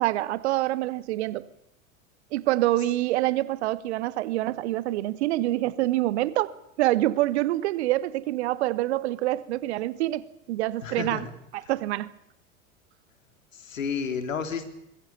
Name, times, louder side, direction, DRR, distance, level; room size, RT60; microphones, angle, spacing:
voice 1, 0.0-1.5 2.3-11.3 11.5-12.1, right 16 dB, 55° right, 1.2 m, -26 dB
voice 2, 10.8-11.3 13.6-14.6, left 6 dB, 70° left, 3.7 m, -31 dB
25.0 x 21.0 x 7.1 m
figure-of-eight pair, 85°, 40 cm